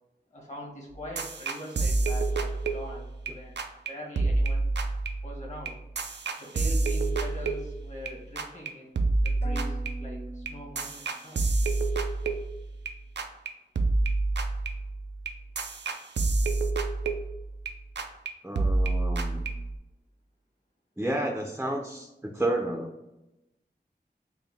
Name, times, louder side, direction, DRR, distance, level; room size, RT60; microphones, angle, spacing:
voice 1, 0.3-3.6 3.9-4.7 5.2-5.8 6.4-11.4, equal, 40° left, -1 dB, 1.3 m, -43 dB
sound 1, 0.9-3.3 3.6-3.9 4.2-8.1 8.4-8.7 9.0-12.9 13.2-13.5 13.8-17.7 18.0-18.3 18.6-19.8, right 3 dB, 85° right, 0.4 m, -28 dB
sound 2, 9.4-11.4, right 1 dB, 80° left, 1.5 m, -43 dB
voice 2, 18.4-19.4 21.0-22.9, right 1 dB, 10° right, 1 dB, 0.5 m, -31 dB
3.8 x 2.2 x 3.4 m, 0.93 s
wide cardioid pair, 60°, 18 cm